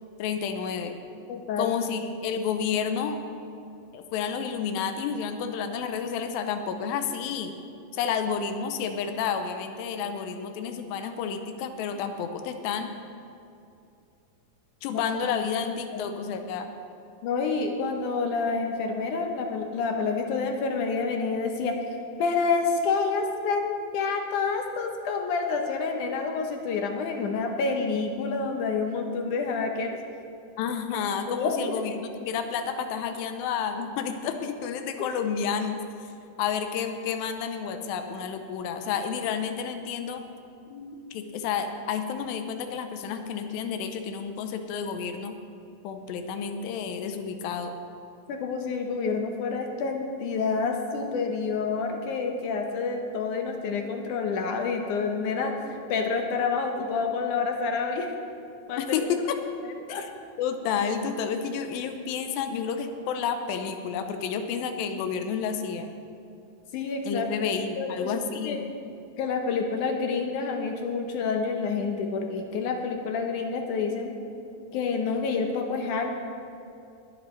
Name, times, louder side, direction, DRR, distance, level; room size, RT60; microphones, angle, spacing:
voice 1, 0.2-1.0 1.6-3.2 3.9-7.6 7.9-12.9 14.8-16.7 30.6-35.8 36.4-40.2 41.1-45.3 45.8-47.7 58.8-59.4 59.9-60.1 60.4-65.9 67.1-68.6, left 7 dB, 85° left, 7 dB, 2.5 m, -30 dB
voice 2, 1.3-1.7 14.9-15.0 15.9-16.2 17.2-21.8 22.2-30.0 30.9-31.6 40.7-41.0 48.3-58.2 58.7-58.8 59.6-60.0 66.7-67.5 67.8-68.6 69.2-74.1 74.7-76.1, left 4 dB, 70° left, 3 dB, 2.1 m, -28 dB
21.0 x 10.0 x 3.2 m, 2.6 s
omnidirectional pair, 4.1 m